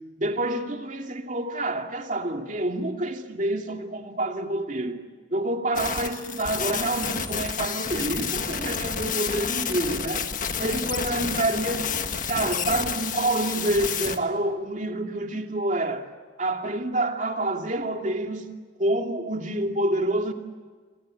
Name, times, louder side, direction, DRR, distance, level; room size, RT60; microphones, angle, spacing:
voice 1, 0.2-5.0 5.3-10.3 10.6-16.1 16.4-18.5 18.8-20.3, right 1 dB, 40° right, 2.6 m, -27 dB
sound 1, 5.7-14.2, left 6 dB, 45° left, 1.7 m, -30 dB
28.0 x 25.0 x 7.7 m
head